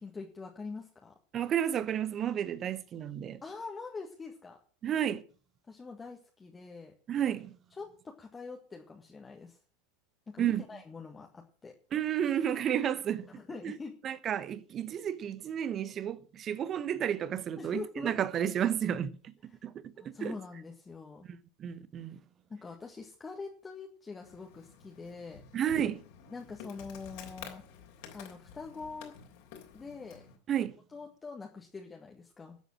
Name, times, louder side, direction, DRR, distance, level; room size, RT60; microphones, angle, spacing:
voice 1, 0.0-1.1 3.4-4.6 5.7-6.9 7.7-9.6 10.3-11.7 13.4-14.0 17.6-18.1 19.5-19.6 20.0-21.3 22.5-25.4 26.3-27.6 28.1-29.2 29.7-30.3 30.9-32.6, left 4 dB, 15° left, 1.8 m, -44 dB
voice 2, 1.3-3.4 4.8-5.2 7.1-7.5 10.4-10.6 11.9-13.3 13.6-13.7 14.0-19.3 19.6-20.3 21.3-22.2 25.5-26.0 30.5-30.8, right 9 dB, 30° right, 1.1 m, -32 dB
Insect, 24.2-30.4, left 7 dB, 55° left, 3.3 m, -51 dB
12.5 x 8.0 x 7.5 m
figure-of-eight pair, 85°, 0 cm